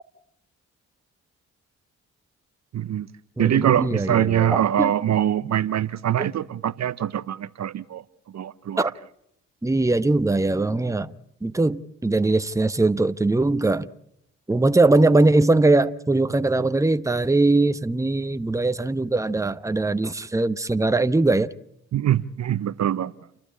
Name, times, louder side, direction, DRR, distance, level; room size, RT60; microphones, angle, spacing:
voice 1, 2.7-3.1 3.4-8.0 8.3-8.9 21.9-23.1, right 10 dB, 55° right, 0.7 m, -23 dB
voice 2, 3.4-4.9 6.2-6.3 8.8-8.9 9.6-11.1 11.4-13.9 14.5-21.5, right 2 dB, 10° right, 0.9 m, -21 dB
29.5 x 12.0 x 8.6 m
supercardioid pair, 50°, 33 cm